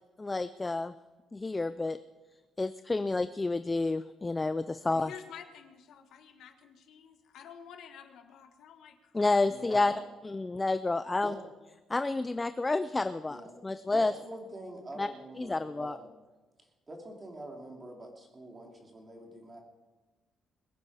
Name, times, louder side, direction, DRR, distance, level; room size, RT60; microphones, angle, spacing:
voice 1, 0.2-0.9 1.3-2.0 2.6-5.1 9.1-9.9 10.2-11.4 11.9-13.4 13.6-14.1 15.0-15.1 15.4-16.0, left 3 dB, 15° left, 12 dB, 0.4 m, -29 dB
voice 2, 4.9-9.4 9.7-10.0, left 8 dB, 65° left, 8 dB, 1.3 m, -50 dB
voice 3, 9.5-10.0 11.2-11.4 13.3-13.5 13.9-16.1 16.6-19.6, right 1 dB, 20° right, 2 dB, 2.6 m, -45 dB
21.5 x 9.8 x 4.8 m, 1.2 s
cardioid pair, 150°, 0 cm